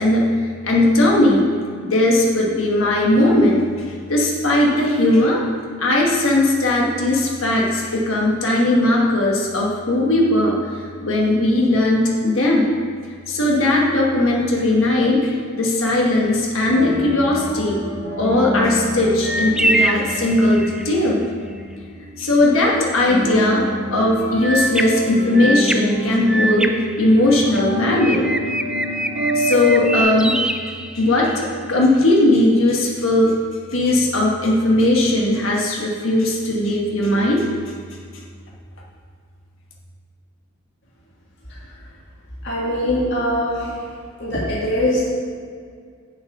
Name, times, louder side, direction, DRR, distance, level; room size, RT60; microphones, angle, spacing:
voice 1, 0.0-1.4 1.8-3.7 4.1-5.4 5.8-10.6 11.0-12.7 13.3-17.8 18.2-21.2 22.2-23.6 23.9-28.3 29.3-30.4 30.9-33.3 33.7-37.4, left 1 dB, 80° left, -2 dB, 1.2 m, -18 dB
sound 1, 16.6-30.0, equal, 85° right, 2.3 m, -28 dB
sound 2, 19.2-20.9 24.4-27.6 28.0-31.5, right 2 dB, 5° right, 0.3 m, -24 dB
voice 2, 42.4-43.7 44.2-45.0, left 1 dB, 60° left, -7 dB, 1.9 m, -22 dB
7.6 x 7.1 x 5.3 m, 2.1 s
head